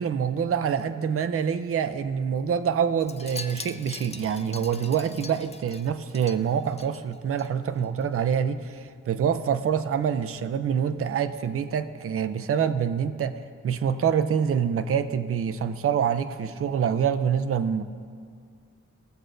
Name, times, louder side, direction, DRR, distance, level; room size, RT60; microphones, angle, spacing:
voice 1, 0.0-17.8, right 7 dB, 45° right, 11 dB, 0.4 m, -26 dB
Wind chime, 3.0-7.5 7.8-8.1 8.3-8.4, left 4 dB, 20° left, 0.4 m, -42 dB
16.5 x 7.7 x 2.5 m, 2.1 s
wide cardioid pair, 100°, 33 cm